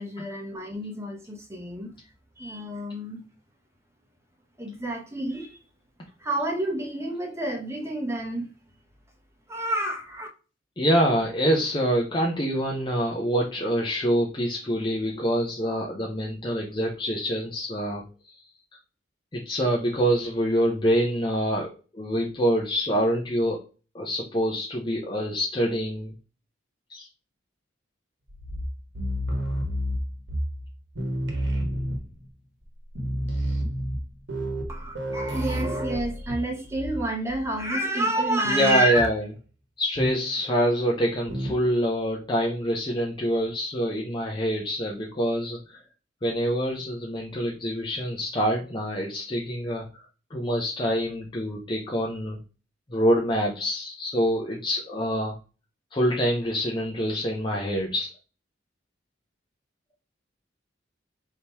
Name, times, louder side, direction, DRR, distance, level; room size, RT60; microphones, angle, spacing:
voice 1, 0.0-1.9 2.4-3.2 4.6-5.6 6.2-8.5 9.5-10.3 34.7-39.1, right 1 dB, 15° right, 0.9 m, -29 dB
voice 2, 10.8-18.4 19.3-23.7 23.9-26.1 26.9-27.1 38.4-39.3 39.8-45.8 46.2-50.0 50.3-52.4 52.9-55.3 55.9-58.1, equal, 25° left, 0.6 m, -26 dB
sound 1, 28.3-30.7 30.9-32.3 32.6-32.7 32.9-37.0 37.3-37.6 38.9-39.2 39.9-40.4 41.3-41.7, equal, 70° right, 1.2 m, -30 dB
3.6 x 2.8 x 4.5 m
head